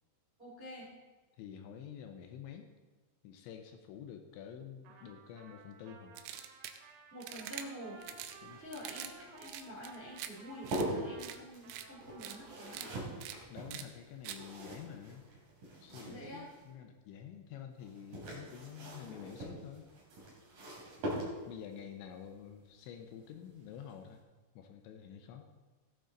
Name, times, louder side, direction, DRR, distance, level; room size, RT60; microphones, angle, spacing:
voice 1, 0.4-0.9 7.1-8.0 8.6-12.9 16.1-16.5, equal, 25° right, -5 dB, 1.2 m, -48 dB
voice 2, 1.4-2.7 3.2-6.2 8.4-8.7 13.5-15.2 15.8-19.9 21.1-24.2 24.6-25.5, left 8 dB, 80° left, 5 dB, 2.9 m, -49 dB
Trumpet, 4.8-12.9, right 4 dB, 75° right, 3.7 m, -57 dB
sound 1, 6.2-6.8 7.2-7.6 8.0-8.4 8.7-9.1 9.4-10.3 10.7-10.8 11.2-11.4 11.7-11.8 12.2-12.4 12.7-12.9 13.2-13.4 13.7-13.8 14.2-14.4, right 11 dB, 90° right, 2.3 m, -44 dB
sound 2, 7.8-16.7 17.8-21.7 23.3-23.6 23.9-24.0, right 1 dB, 50° right, 3.9 m, -43 dB
16.5 x 9.1 x 3.9 m, 1.3 s
omnidirectional pair, 5.7 m